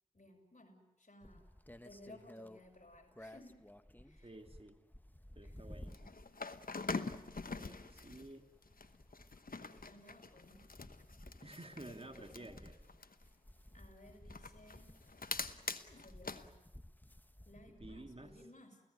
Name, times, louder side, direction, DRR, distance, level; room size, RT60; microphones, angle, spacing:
voice 1, 0.1-1.5 1.8-3.6 4.0-4.4 5.4-5.6 9.6-10.7 11.9-12.6 13.7-14.9 15.8-16.6 17.4-18.8, left 1 dB, 55° left, 1 dB, 6.2 m, -59 dB
sound 1, 1.2-18.4, left 1 dB, 10° left, 1.2 m, -57 dB
voice 2, 4.2-4.8 5.4-6.0 7.4-8.5 11.4-12.7 17.8-18.3, right 2 dB, 40° right, 5 dB, 2.5 m, -52 dB
Handling Snowboard Strap-In Boots Foley, 5.9-8.3 8.6-13.2 14.3-16.4, left 4 dB, 85° left, 1.0 m, -44 dB
29.5 x 17.0 x 9.4 m, 0.94 s
wide cardioid pair, 45°, 14 cm